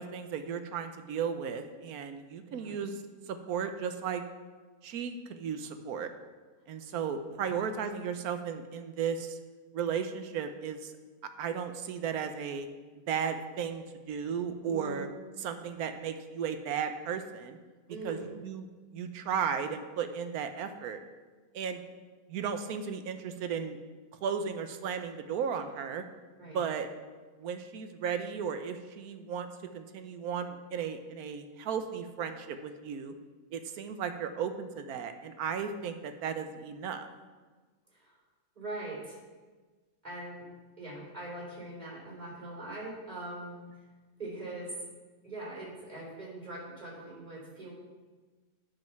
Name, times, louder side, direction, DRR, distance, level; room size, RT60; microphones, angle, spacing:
voice 1, 0.0-3.0 3.3-4.2 4.8-6.1 6.7-9.4 9.7-11.0 11.4-12.7 13.1-15.1 15.4-17.6 18.0-18.2 18.4-18.7 18.9-21.0 21.5-21.8 22.3-23.8 24.2-26.0 26.5-26.9 27.4-29.5 29.7-33.1 33.5-37.1, right 7 dB, 80° right, 8 dB, 1.2 m, -35 dB
voice 2, 14.7-15.0 17.9-18.3 26.4-26.6 37.9-38.1 38.5-39.2 40.0-40.5 40.8-43.6 44.2-44.8 45.2-47.7, right 2 dB, 30° right, -6 dB, 3.7 m, -42 dB
10.5 x 5.4 x 5.8 m, 1.3 s
omnidirectional pair, 1.6 m